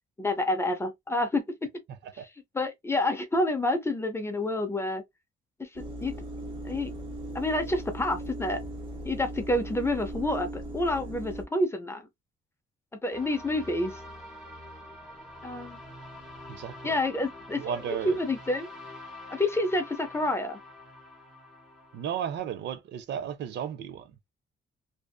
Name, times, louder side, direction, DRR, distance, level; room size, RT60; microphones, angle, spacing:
voice 1, 0.2-1.4 2.5-5.0 5.6-6.1 6.6-6.9 7.3-8.6 9.0-12.1 13.0-13.9 15.4-15.8 16.8-18.7 19.3-20.6, left 1 dB, 15° left, 0.4 m, -28 dB
sound 1, 5.8-11.5, right 1 dB, 25° right, 0.8 m, -38 dB
sound 2, 13.1-22.4, left 1 dB, ahead, 0.9 m, -46 dB
voice 2, 16.5-17.0 17.6-18.2 21.9-24.1, right 9 dB, 70° right, 0.5 m, -34 dB
2.6 x 2.4 x 2.2 m
cardioid pair, 145°, 19 cm